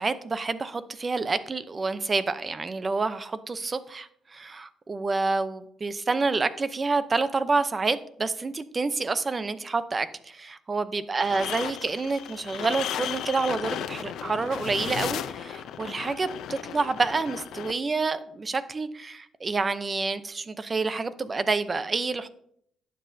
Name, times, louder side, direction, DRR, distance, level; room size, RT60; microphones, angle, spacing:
voice 1, 0.0-22.3, right 3 dB, 30° right, 13 dB, 0.7 m, -28 dB
sound 1, 11.2-17.7, left 10 dB, 80° left, 0.5 m, -35 dB
11.5 x 7.8 x 2.7 m, 0.68 s
cardioid pair, 90°, 0 cm